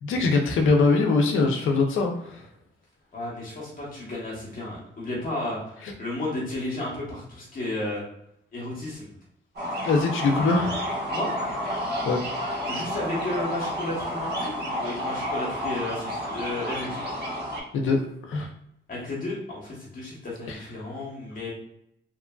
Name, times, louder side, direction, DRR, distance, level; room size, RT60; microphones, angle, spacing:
voice 1, 0.0-2.4 5.8-5.9 9.8-10.9 12.1-12.2 17.7-18.0 18.3-18.5 20.5-20.6, left 3 dB, 75° left, 3 dB, 0.6 m, -22 dB
voice 2, 3.1-8.0 8.5-9.1 11.1-11.4 12.7-17.1 18.9-21.5, left 2 dB, 45° left, -4 dB, 1.0 m, -33 dB
sound 1, 9.6-17.6, equal, 55° right, 1.3 m, -30 dB
2.9 x 2.4 x 2.3 m, 0.77 s
cardioid pair, 120°, 20 cm